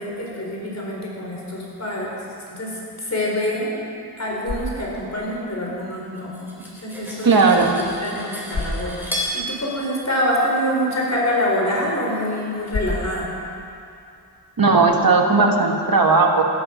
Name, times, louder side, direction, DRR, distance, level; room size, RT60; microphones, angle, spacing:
voice 1, 0.0-2.2 2.5-3.7 4.2-7.4 7.8-13.3, equal, 40° left, -3 dB, 4.3 m, -26 dB
sound 1, 4.1-15.1, left 2 dB, 65° left, 3.0 m, -37 dB
Cutlery silverware, 6.2-9.4, left 1 dB, 5° right, 3.6 m, -32 dB
voice 2, 7.2-7.8 14.6-16.4, right 4 dB, 60° right, 2 dB, 1.7 m, -16 dB
15.5 x 13.5 x 5.1 m, 2.6 s
wide cardioid pair, 75°, 39 cm